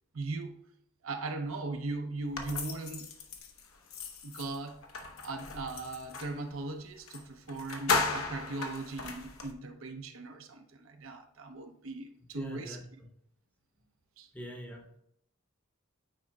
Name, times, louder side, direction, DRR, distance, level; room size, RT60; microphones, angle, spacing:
voice 1, 0.1-0.6 1.0-3.1 4.2-4.8 5.2-12.8 14.2-14.3, right 3 dB, 70° right, 5 dB, 0.7 m, -39 dB
sound 1, 2.3-6.4 7.1-7.2 7.5-9.5, left 4 dB, 70° left, 0.9 m, -36 dB
voice 2, 12.3-12.8 14.3-15.0, left 1 dB, 10° left, 1 dB, 0.7 m, -44 dB
8.7 x 4.9 x 2.3 m, 0.75 s
head